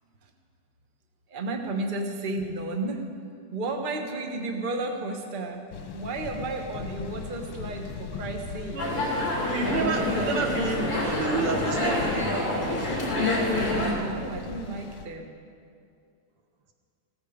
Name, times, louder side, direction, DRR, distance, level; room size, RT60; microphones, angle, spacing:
voice 1, 1.3-3.1 3.5-5.7 5.9-8.8 9.6-9.8 13.8-15.4, right 2 dB, 30° right, 3 dB, 1.0 m, -33 dB
sound 1, 5.7-15.1, left 6 dB, 80° left, 2.0 m, -39 dB
sound 2, 8.8-13.9, left 1 dB, 35° left, 3.1 m, -27 dB
voice 2, 9.5-12.4, right 4 dB, 85° right, 3 dB, 2.3 m, -29 dB
16.5 x 14.0 x 5.0 m, 2.3 s
omnidirectional pair, 2.4 m